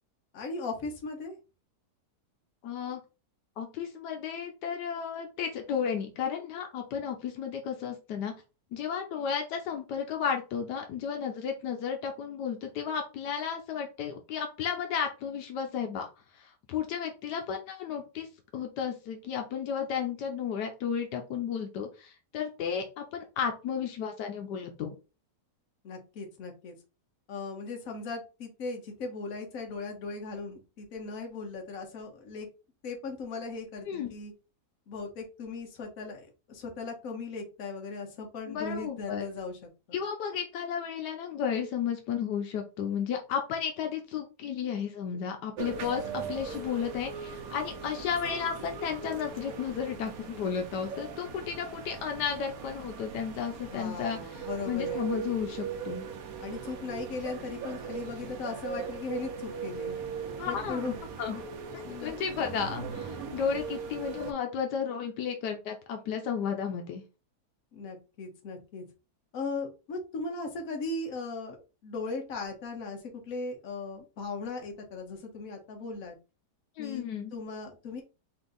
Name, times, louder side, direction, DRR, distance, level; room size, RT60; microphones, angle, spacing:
voice 1, 0.3-1.4 25.8-26.7 27.3-32.5 32.8-34.3 34.9-39.6 39.9-40.0 53.7-55.1 56.4-60.0 60.4-61.0 61.8-62.5 67.7-68.8 69.3-73.0 73.2-76.1 76.8-77.0 77.3-78.0, left 3 dB, 60° left, 2 dB, 1.4 m, -38 dB
voice 2, 2.6-3.0 3.6-8.3 8.7-16.1 16.3-18.3 18.5-24.9 33.9-34.1 38.5-39.3 39.9-56.1 60.4-61.4 61.7-67.0 76.8-77.3, left 7 dB, 85° left, 4 dB, 1.3 m, -33 dB
sound 1, 45.6-64.3, right 6 dB, 65° right, 1.1 m, -39 dB
4.4 x 2.6 x 3.8 m, 0.31 s
omnidirectional pair, 1.8 m